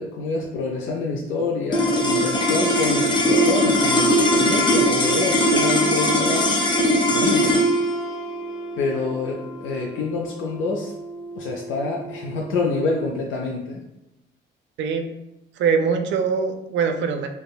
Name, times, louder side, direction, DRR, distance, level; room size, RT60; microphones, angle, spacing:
voice 1, 0.0-6.5 7.0-7.6 8.8-10.9 11.4-13.8, left 3 dB, 80° left, -1 dB, 0.4 m, -27 dB
sound 1, 1.7-12.2, equal, 25° left, 0.5 m, -21 dB
voice 2, 15.6-17.3, right 6 dB, 70° right, 6 dB, 0.4 m, -22 dB
3.4 x 2.1 x 2.2 m, 0.91 s
cardioid pair, 90°, 20 cm